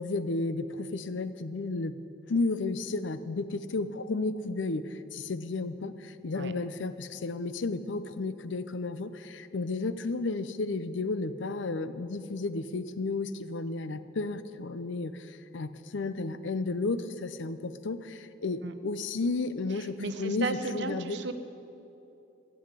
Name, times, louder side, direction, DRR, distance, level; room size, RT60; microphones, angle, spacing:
voice 1, 0.0-2.0 2.3-21.2, left 3 dB, 75° left, 13 dB, 0.6 m, -33 dB
voice 2, 19.7-21.3, right 3 dB, 65° right, 10 dB, 0.7 m, -35 dB
14.5 x 7.9 x 8.1 m, 2.9 s
head